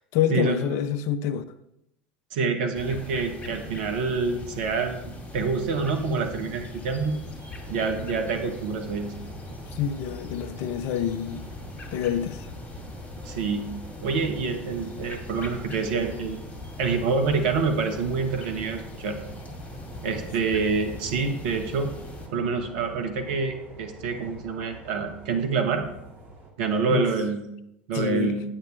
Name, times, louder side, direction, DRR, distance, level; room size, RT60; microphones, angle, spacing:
voice 1, 0.0-1.4 9.7-11.5 11.9-12.5 26.9-27.1 27.9-28.4, left 9 dB, 55° left, 0.6 m, -27 dB
voice 2, 2.3-5.0 5.3-7.2 7.7-9.1 13.2-13.7 14.0-16.4 16.8-19.2 20.0-22.0 22.3-25.9 26.6-27.4 27.9-28.4, right 4 dB, 65° right, 1.3 m, -27 dB
sound 1, 2.7-22.3, left 2 dB, 25° left, 2.1 m, -40 dB
sound 2, 7.4-26.5, right 1 dB, 35° right, 2.4 m, -47 dB
8.8 x 8.3 x 3.3 m
figure-of-eight pair, 75°, 6 cm